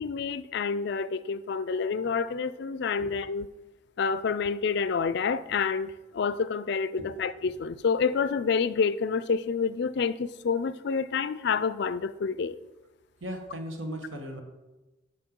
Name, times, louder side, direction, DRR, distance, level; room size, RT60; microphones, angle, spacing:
voice 1, 0.0-3.5 4.0-12.6, left 5 dB, 60° left, 0.4 m, -28 dB
voice 2, 13.2-14.4, right 1 dB, 80° right, 1.4 m, -36 dB
11.0 x 6.4 x 3.7 m
head